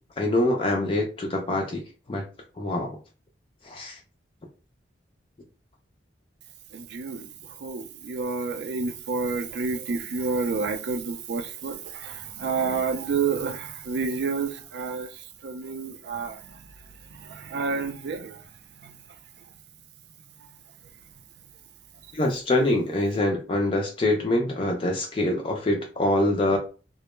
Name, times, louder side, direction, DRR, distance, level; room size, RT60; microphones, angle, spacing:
voice 1, 0.2-1.8 2.1-2.2 2.6-3.0 3.6-4.0 22.1-26.6, left 1 dB, 30° left, 0.3 m, -24 dB
voice 2, 6.7-7.3 7.6-15.1 15.4-16.6 17.2-18.4 18.8-18.9, right 4 dB, 60° right, 0.3 m, -29 dB
2.1 x 2.0 x 3.0 m
head